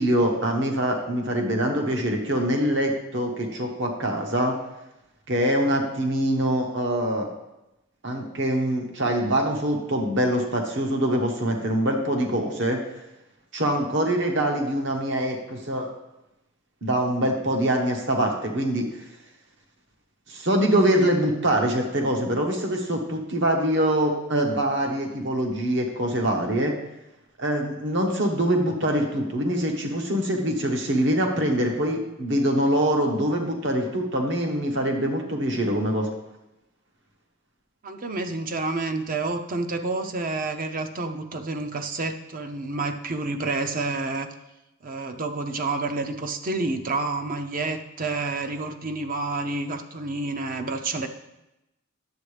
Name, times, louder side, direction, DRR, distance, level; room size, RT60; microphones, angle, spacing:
voice 1, 0.0-4.5 5.3-7.3 8.0-12.8 13.5-15.9 16.8-18.9 20.3-26.7 27.4-36.1, right 1 dB, 60° right, 2 dB, 1.2 m, -24 dB
voice 2, 37.8-44.3 44.8-51.1, right 3 dB, 45° right, 6 dB, 0.6 m, -29 dB
10.5 x 7.8 x 3.3 m, 0.93 s
head